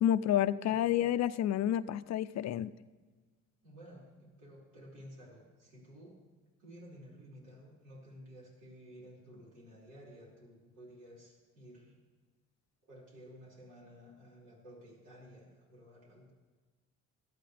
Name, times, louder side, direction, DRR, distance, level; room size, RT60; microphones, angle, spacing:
voice 1, 0.0-2.7, left 11 dB, 60° left, 15 dB, 0.5 m, -29 dB
voice 2, 0.6-1.0 3.6-6.2 6.6-12.0 12.9-16.3, equal, 85° right, -5 dB, 5.3 m, -53 dB
18.0 x 12.0 x 3.4 m, 1.4 s
cardioid pair, 90°, 30 cm